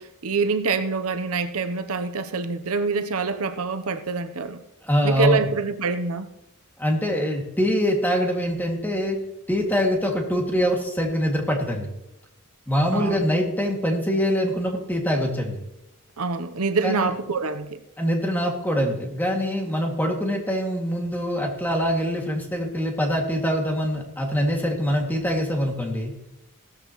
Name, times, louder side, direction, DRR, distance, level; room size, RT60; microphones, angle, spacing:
voice 1, 0.0-4.6 5.0-6.3 12.9-13.3 16.2-17.8, right 4 dB, 80° right, 0.9 m, -25 dB
voice 2, 4.9-5.4 6.8-9.2 9.5-11.9 12.7-15.6 16.8-17.1 18.0-26.1, equal, 10° left, 2.3 m, -24 dB
16.5 x 13.5 x 3.1 m
head